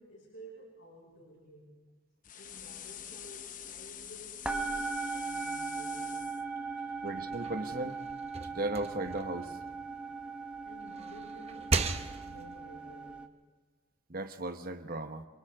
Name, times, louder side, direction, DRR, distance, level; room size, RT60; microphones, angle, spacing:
voice 1, 0.0-1.8 2.3-6.2 6.8-7.2 10.6-13.3, right 1 dB, 70° left, -3 dB, 5.7 m, -53 dB
sound 1, 2.2-6.4, left 10 dB, 40° left, 0.8 m, -46 dB
sound 2, 2.6-2.7 3.0-4.1 4.4-13.3, right 4 dB, 5° right, 1.0 m, -39 dB
voice 2, 7.0-8.0 8.5-9.6 14.1-15.3, right 2 dB, 45° right, 8 dB, 1.2 m, -36 dB
sound 3, 7.2-10.4 10.8-12.6, right 3 dB, 30° right, 0.8 m, -37 dB
30.0 x 23.5 x 3.7 m, 1.3 s
head